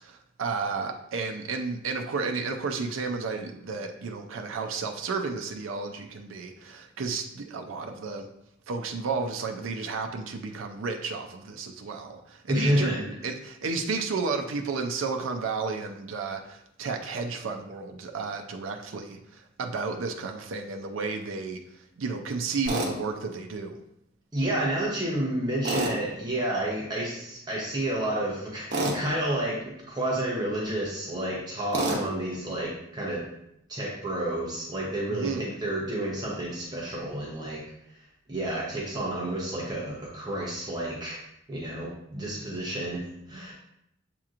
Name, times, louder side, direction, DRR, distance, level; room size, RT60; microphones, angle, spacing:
voice 1, 0.0-8.3 8.7-23.8 35.1-35.5, right 4 dB, 85° right, 4 dB, 0.5 m, -32 dB
voice 2, 12.5-13.0 24.3-33.3 33.7-38.0 38.3-41.2 41.5-43.5, right 1 dB, 20° right, -5 dB, 0.8 m, -30 dB
Tools, 22.7-22.9 25.6-26.0 28.7-29.0 31.7-32.0, right 2 dB, 60° right, 0.9 m, -27 dB
7.5 x 2.9 x 2.5 m, 0.79 s
head